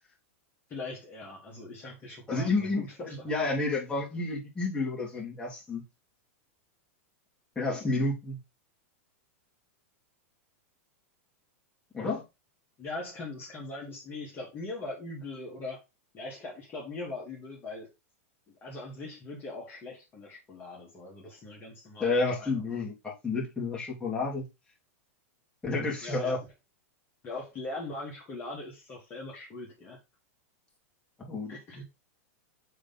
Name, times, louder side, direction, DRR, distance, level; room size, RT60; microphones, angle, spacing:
voice 1, 0.7-3.2 12.8-15.8 16.1-17.9 18.6-22.6 26.0-26.5 27.2-30.0 31.5-31.8, left 2 dB, 25° left, 2.1 m, -41 dB
voice 2, 2.3-5.8 7.6-8.4 11.9-12.2 22.0-24.4 25.6-26.4 31.2-31.5, left 3 dB, 10° left, 2.5 m, -30 dB
6.5 x 3.6 x 4.0 m
hypercardioid pair, 125°, 8 cm